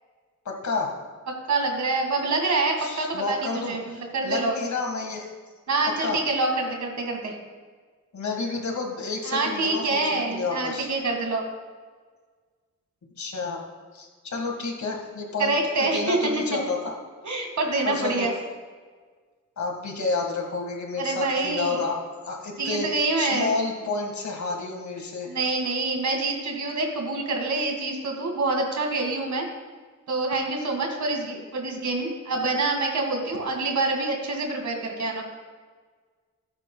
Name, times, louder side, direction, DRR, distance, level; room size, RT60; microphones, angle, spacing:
voice 1, 0.5-1.0 2.8-5.3 6.0-6.2 8.1-10.9 13.2-13.6 13.9-17.0 17.8-18.3 19.6-22.9 23.2-25.3, left 3 dB, 65° left, 2 dB, 1.8 m, -30 dB
voice 2, 1.5-4.5 5.7-7.4 9.3-11.4 15.4-16.3 17.2-18.3 21.0-21.8 22.6-23.5 25.3-29.5 30.1-35.2, right 3 dB, 65° right, 2 dB, 2.0 m, -26 dB
16.0 x 9.0 x 2.3 m, 1.5 s
wide cardioid pair, 100°, 31 cm